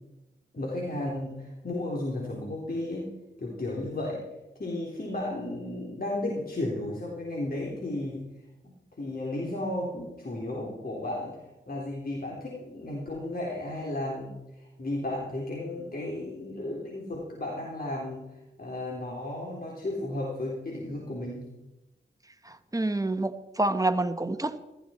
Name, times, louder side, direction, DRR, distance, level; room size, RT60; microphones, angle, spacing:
voice 1, 0.5-3.1 3.4-4.2 4.6-8.3 8.6-11.3 11.7-18.3 18.6-21.5, left 1 dB, 45° left, -3 dB, 3.6 m, -34 dB
voice 2, 22.4-24.6, right 2 dB, 15° right, 9 dB, 1.2 m, -28 dB
15.0 x 13.5 x 4.4 m, 0.99 s
cardioid pair, 40°, 21 cm